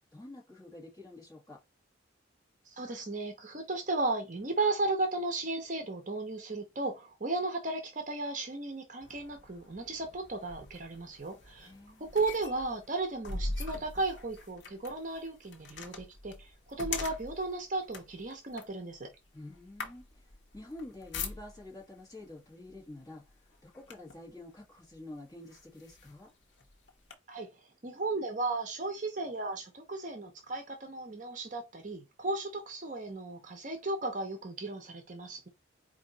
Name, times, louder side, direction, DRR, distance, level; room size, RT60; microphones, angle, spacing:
voice 1, 0.1-1.6 11.6-12.1 19.3-20.2 20.5-26.3, left 2 dB, 20° left, 1.6 m, -48 dB
voice 2, 2.7-11.7 12.0-19.1 27.3-27.5 27.8-35.5, right 2 dB, 40° right, 0.7 m, -35 dB
sound 1, 9.0-21.8 22.7-22.9 23.3-24.3 24.9-25.0 25.5-27.1, left 3 dB, 65° left, 1.0 m, -43 dB
4.3 x 2.7 x 3.9 m
head